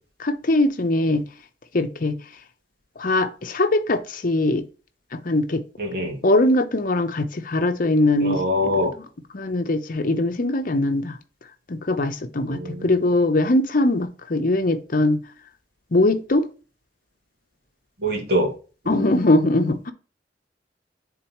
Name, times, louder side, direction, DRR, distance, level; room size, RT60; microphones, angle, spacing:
voice 1, 0.2-1.2 1.7-2.2 3.0-4.6 5.1-5.6 6.2-8.4 9.0-9.1 9.3-11.2 11.7-15.2 15.9-16.4 18.9-19.9, left 2 dB, 50° left, 0.8 m, -21 dB
voice 2, 5.8-6.2 8.2-8.9 12.5-12.9 18.0-18.5 18.9-19.0, left 1 dB, 60° right, 2.2 m, -24 dB
10.5 x 4.0 x 3.0 m
head